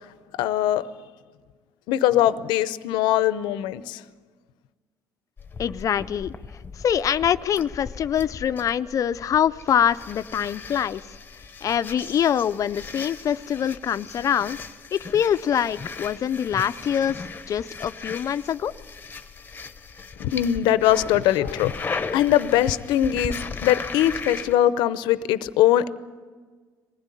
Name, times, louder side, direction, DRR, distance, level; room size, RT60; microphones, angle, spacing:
voice 1, 0.4-0.8 1.9-4.0 20.2-21.7 22.1-25.9, left 12 dB, 90° left, 15 dB, 0.7 m, -21 dB
sound 1, 5.4-24.5, left 4 dB, 25° left, 1.0 m, -37 dB
voice 2, 5.6-6.3 6.7-11.0 11.6-14.6 14.9-18.7, left 9 dB, 50° left, 13 dB, 0.5 m, -24 dB
20.5 x 15.5 x 9.9 m, 1.5 s
cardioid pair, 110°, 8 cm